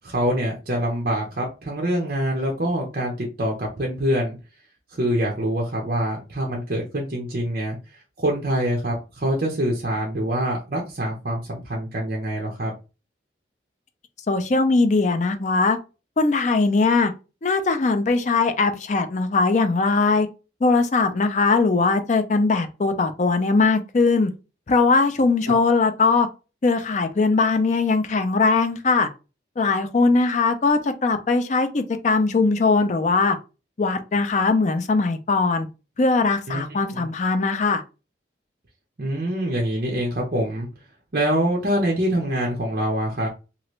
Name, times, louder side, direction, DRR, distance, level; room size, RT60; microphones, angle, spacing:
voice 1, 0.0-4.4 4.9-7.8 8.2-12.7 25.5-25.6 36.5-37.1 39.0-40.7 41.1-43.3, right 1 dB, 50° right, 0.7 m, -25 dB
voice 2, 14.3-15.8 16.2-17.1 17.4-20.3 20.6-24.3 24.7-26.3 26.6-29.1 29.6-33.4 33.8-35.7 36.0-37.8, left 3 dB, 40° left, 0.4 m, -20 dB
3.0 x 2.5 x 3.1 m
head